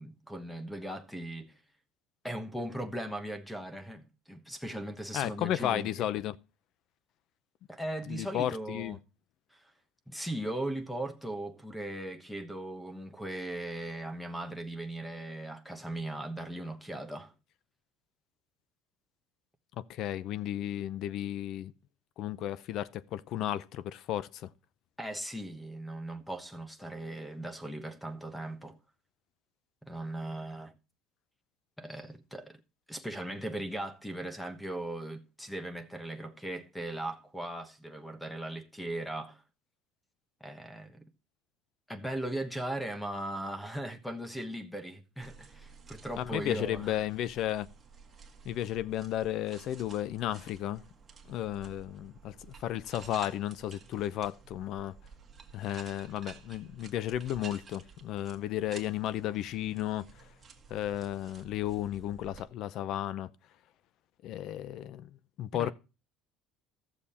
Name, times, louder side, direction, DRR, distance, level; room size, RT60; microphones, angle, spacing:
voice 1, 0.0-1.6 2.2-6.0 7.7-9.0 9.5-9.7 10.1-17.3 25.0-28.8 29.8-30.8 31.8-32.6 32.9-39.4 40.4-41.1 41.9-47.0 65.5-65.7, right 1 dB, 5° left, 1.1 m, -38 dB
voice 2, 5.1-6.3 8.1-9.0 19.9-21.7 22.2-24.5 46.2-47.7 48.4-50.8 51.3-54.9 55.5-60.1 60.7-63.3 64.2-65.7, left 12 dB, 55° left, 0.6 m, -34 dB
sound 1, 45.2-62.4, right 5 dB, 25° right, 1.5 m, -53 dB
14.0 x 7.1 x 4.2 m
cardioid pair, 135°, 0 cm